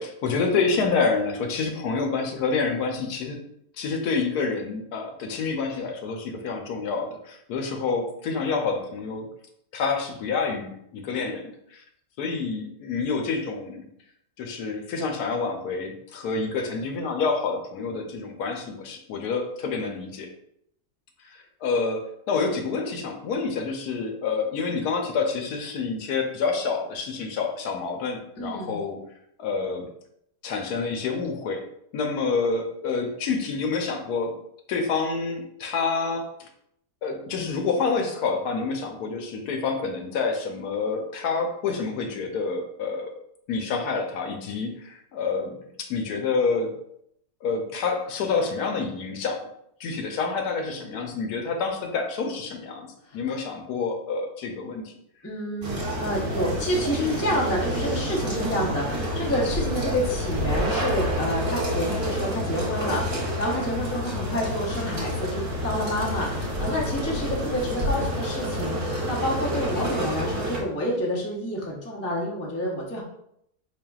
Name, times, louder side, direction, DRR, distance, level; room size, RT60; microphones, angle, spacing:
voice 1, 0.0-3.4 3.8-9.3 9.7-11.8 12.2-13.8 14.4-20.3 21.2-29.0 29.4-29.9 30.4-31.6 31.9-34.3 34.7-36.5 37.0-43.1 43.5-46.7 47.4-49.5 49.8-52.9 53.1-54.9, left 4 dB, 75° left, 3 dB, 1.1 m, -28 dB
voice 2, 28.4-28.8 53.1-53.2 55.2-55.7 56.0-73.0, equal, 20° left, -4 dB, 0.3 m, -28 dB
sound 1, 55.6-70.6, equal, 35° right, 0.9 m, -28 dB
4.9 x 2.9 x 2.3 m, 0.74 s
omnidirectional pair, 1.7 m